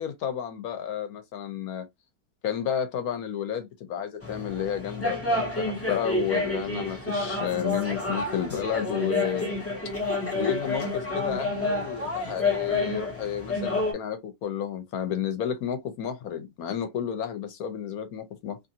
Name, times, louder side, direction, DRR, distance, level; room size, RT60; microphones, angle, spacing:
voice 1, 0.0-1.8 2.4-9.6 10.3-18.6, left 8 dB, 65° left, 1.2 m, -31 dB
sound 1, 4.2-13.9, left 2 dB, 20° left, 0.3 m, -29 dB
3.0 x 2.6 x 2.7 m
omnidirectional pair, 1.8 m